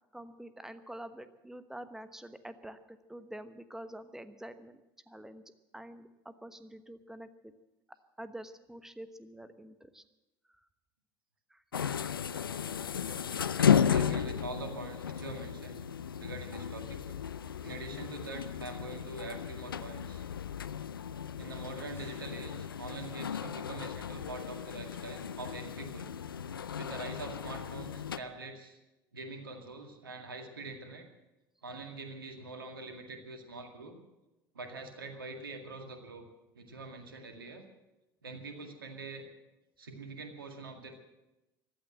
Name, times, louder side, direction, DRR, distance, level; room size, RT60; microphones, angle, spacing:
voice 1, 0.1-4.8 5.1-5.4 5.7-7.5 8.2-10.0 11.5-12.0, right 1 dB, 5° right, 11 dB, 1.1 m, -47 dB
sound 1, 11.7-28.2, left 8 dB, 80° left, 0.5 m, -34 dB
voice 2, 13.6-15.8 16.1-17.2 17.6-20.2 21.4-26.2 26.8-28.8 29.1-31.1 31.6-34.0 34.5-36.2 36.5-37.6 38.2-39.3 39.8-41.0, right 3 dB, 80° right, 4 dB, 2.0 m, -44 dB
sound 2, 21.9-23.4, left 2 dB, 20° left, 5.0 m, -60 dB
15.0 x 12.0 x 7.7 m, 1.0 s
figure-of-eight pair, 70°, 11 cm